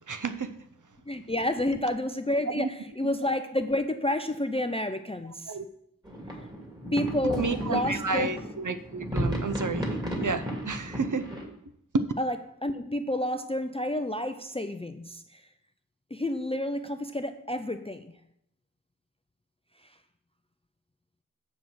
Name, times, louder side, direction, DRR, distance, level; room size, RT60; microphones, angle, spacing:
voice 1, 0.1-0.5 2.5-2.7 5.5-5.6 7.4-9.9 10.2-11.3 11.9-12.1, right 3 dB, 65° right, 0.7 m, -30 dB
voice 2, 1.1-5.6 6.9-8.4 12.2-12.4 12.6-15.4 16.1-18.1, left 1 dB, 20° left, 0.5 m, -30 dB
sound 1, 6.0-11.4, equal, 10° right, 2.5 m, -33 dB
7.4 x 5.9 x 6.2 m
wide cardioid pair, 45°, 33 cm